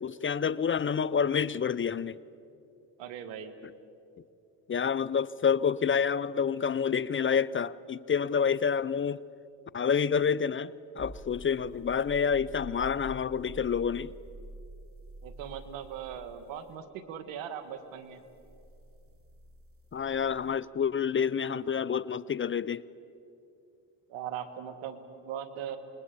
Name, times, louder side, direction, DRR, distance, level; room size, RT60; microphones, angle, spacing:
voice 1, 0.0-2.2 4.7-9.2 9.7-14.1 19.9-22.8, left 7 dB, 30° left, 0.5 m, -28 dB
voice 2, 3.0-3.6 15.2-18.2 24.1-25.8, right 9 dB, 85° right, 1.9 m, -39 dB
sound 1, 11.0-16.7 18.2-20.6, right 2 dB, 30° right, 2.3 m, -48 dB
27.5 x 21.0 x 8.5 m
supercardioid pair, 75°, 44 cm